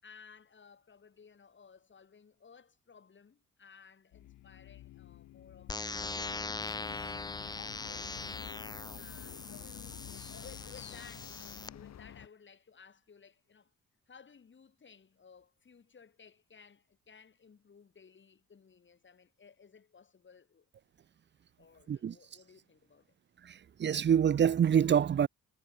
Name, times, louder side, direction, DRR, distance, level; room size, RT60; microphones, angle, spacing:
voice 1, 0.0-8.1 9.0-13.7 14.1-20.7 21.6-23.2, left 6 dB, 40° left, 5.3 m, -58 dB
sound 1, 4.1-10.6, left 15 dB, 85° left, 1.7 m, -54 dB
sound 2, 5.7-11.7, left 3 dB, 15° left, 0.6 m, -41 dB
sound 3, 5.9-12.3, left 9 dB, 60° left, 3.0 m, -49 dB
voice 2, 23.4-25.3, right 8 dB, 35° right, 0.6 m, -26 dB
cardioid pair, 90°, 30 cm